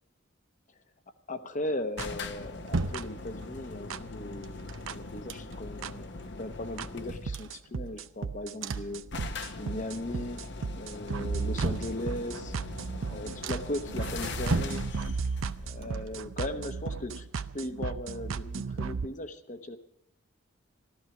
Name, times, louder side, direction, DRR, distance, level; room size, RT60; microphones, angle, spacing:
voice 1, 1.3-4.5 4.9-9.0 9.6-10.4 10.7-12.5 13.1-14.8 15.6-19.8, left 1 dB, 40° left, 9 dB, 1.0 m, -37 dB
sound 1, 2.0-7.5 8.5-8.6 8.8-8.9 9.1-16.6, left 3 dB, 60° left, 1.1 m, -41 dB
sound 2, 2.0-2.1 2.9-3.0 3.9-4.0 4.9-5.0 5.8-5.9 6.8-6.9 7.3-19.1, right 5 dB, 85° right, 0.5 m, -35 dB
sound 3, 2.1-3.7 4.4-5.9 6.2-6.3 6.6-8.2 8.6-9.8 10.1-10.6 11.1-12.5 13.0-13.1 13.4-13.9 14.3-15.5 15.8-17.6 17.9-18.0, right 3 dB, 70° right, 0.9 m, -37 dB
14.5 x 13.0 x 6.0 m, 0.77 s
head